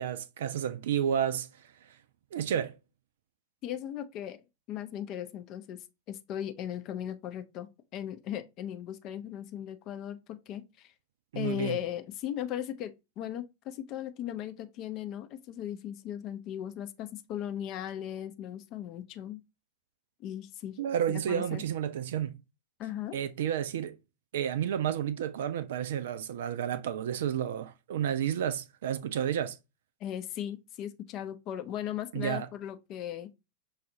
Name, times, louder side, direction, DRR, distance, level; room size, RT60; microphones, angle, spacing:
voice 1, 0.0-1.5 2.3-2.8 11.3-11.8 20.8-22.4 23.1-24.0 24.3-29.6 32.1-32.5, right 9 dB, 60° right, 0.4 m, -31 dB
voice 2, 3.6-4.4 4.7-10.9 11.3-19.4 20.2-20.8 21.1-21.6 22.8-23.2 30.0-33.3, left 11 dB, 40° left, 0.5 m, -37 dB
6.0 x 2.4 x 2.6 m
figure-of-eight pair, 90°, 0 cm